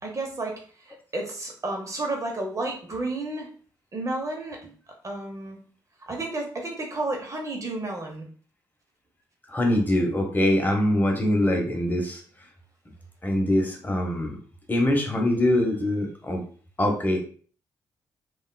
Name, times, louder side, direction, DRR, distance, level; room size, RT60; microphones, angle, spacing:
voice 1, 0.0-3.5 3.9-4.7 5.0-5.6 6.0-8.3, right 2 dB, 40° right, 1 dB, 0.9 m, -32 dB
voice 2, 9.5-12.2 13.2-14.4 14.7-16.4 16.8-17.2, left 1 dB, 20° left, 1 dB, 1.0 m, -23 dB
3.5 x 2.3 x 2.3 m, 0.43 s
supercardioid pair, 50°, 9 cm